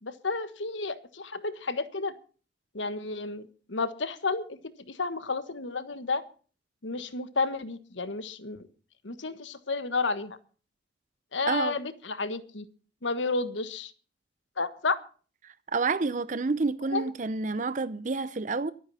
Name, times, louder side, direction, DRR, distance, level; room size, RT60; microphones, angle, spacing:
voice 1, 0.0-2.2 2.7-4.6 4.9-6.2 6.8-8.7 9.0-10.4 11.3-12.6 13.0-13.9 14.6-14.9 16.9-17.1, left 3 dB, 80° left, 1.4 m, -31 dB
voice 2, 15.4-18.7, right 4 dB, 40° right, 0.6 m, -29 dB
23.5 x 9.1 x 4.2 m
head